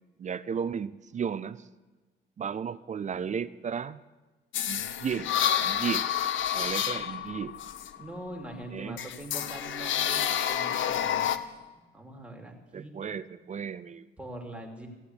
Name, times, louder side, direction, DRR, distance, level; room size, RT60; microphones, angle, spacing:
voice 1, 0.2-1.7 2.4-4.0 4.7-5.3 5.6-6.1 6.5-7.5 8.7-9.0 12.7-14.1, right 7 dB, 40° right, 16 dB, 0.5 m, -34 dB
sound 1, 4.5-8.5 9.0-11.4, left 10 dB, 75° left, 0.8 m, -29 dB
voice 2, 8.0-11.4 11.9-12.9 14.2-14.9, right 1 dB, 5° right, 1 dB, 2.7 m, -42 dB
15.0 x 8.5 x 8.0 m, 1.2 s
cardioid pair, 90°, 20 cm